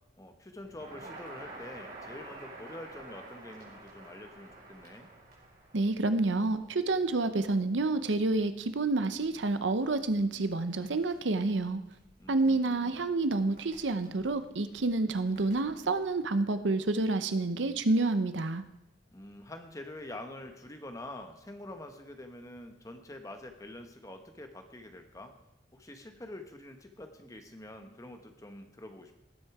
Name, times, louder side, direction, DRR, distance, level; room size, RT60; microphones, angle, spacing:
voice 1, 0.2-5.1 12.2-13.1 19.1-25.3 25.7-29.1, left 1 dB, 20° left, 6 dB, 1.0 m, -46 dB
Crackle, 0.6-16.1, right 2 dB, 55° right, 4.7 m, -52 dB
voice 2, 5.7-11.8 12.3-18.6, right 2 dB, 80° right, 11 dB, 0.7 m, -29 dB
18.5 x 6.4 x 4.8 m, 0.90 s
head